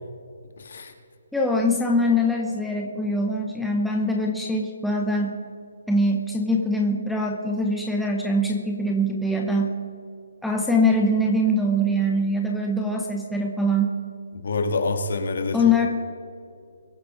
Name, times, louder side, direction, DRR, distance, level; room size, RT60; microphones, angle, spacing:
voice 1, 0.6-0.9 14.3-15.6, left 3 dB, 55° left, 6 dB, 2.1 m, -26 dB
voice 2, 1.3-5.4 5.9-9.8 10.4-13.9 15.5-15.9, left 1 dB, ahead, -1 dB, 0.8 m, -23 dB
23.0 x 8.6 x 3.9 m, 2.4 s
hypercardioid pair, 170°, 0 cm